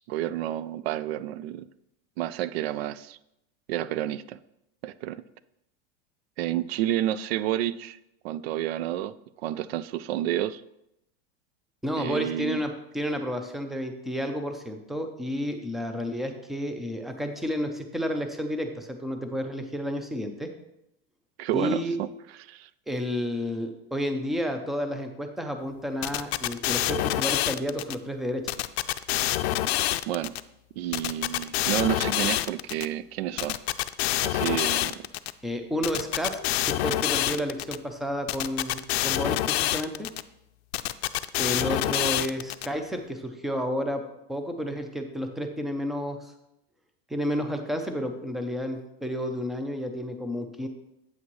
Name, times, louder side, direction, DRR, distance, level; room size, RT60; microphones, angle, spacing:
voice 1, 0.1-1.7 2.2-3.2 3.7-4.4 4.8-5.2 6.4-8.0 8.2-10.6 12.0-12.6 21.4-22.1 22.4-22.7 30.1-30.3 30.8-33.6 34.2-35.0, right 13 dB, 75° right, 17 dB, 0.5 m, -30 dB
voice 2, 11.8-20.5 21.5-22.0 22.9-28.4 35.4-36.4 36.6-40.1 41.4-44.0 44.3-46.3 47.1-50.7, equal, ahead, 6 dB, 0.6 m, -31 dB
sound 1, 26.0-27.9 28.5-30.4 30.9-32.8 33.4-35.3 35.8-37.8 38.3-40.2 40.7-42.7, left 15 dB, 80° left, 0.5 m, -27 dB
8.4 x 8.3 x 3.1 m, 0.84 s
supercardioid pair, 145°, 31 cm